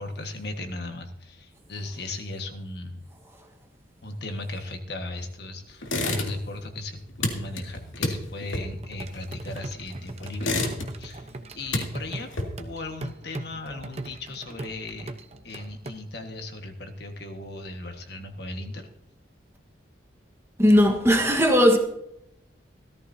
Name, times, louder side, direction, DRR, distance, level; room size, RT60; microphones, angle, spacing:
voice 1, 0.0-3.1 4.0-15.1 15.4-18.9, left 2 dB, 55° left, 1.5 m, -37 dB
sound 1, 5.8-6.6 6.9-9.8 10.2-11.2 11.5-12.8, left 2 dB, 85° left, 2.3 m, -30 dB
sound 2, 8.8-15.9, right 2 dB, 35° right, 0.8 m, -40 dB
voice 2, 20.6-21.8, equal, 15° right, 1.3 m, -18 dB
16.5 x 14.0 x 2.8 m
head